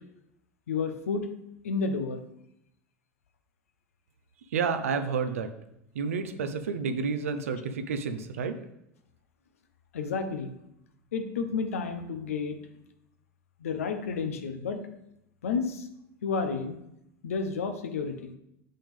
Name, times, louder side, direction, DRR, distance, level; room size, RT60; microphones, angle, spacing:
voice 1, 0.7-1.3 1.6-2.2 9.9-10.5 11.1-12.6 13.6-14.8 15.4-15.9 16.2-16.8 17.2-18.3, left 5 dB, 80° left, 7 dB, 0.8 m, -31 dB
voice 2, 4.5-5.5 5.9-8.6, right 5 dB, 80° right, 9 dB, 0.7 m, -30 dB
7.1 x 5.4 x 3.6 m, 0.81 s
hypercardioid pair, 85°, 8 cm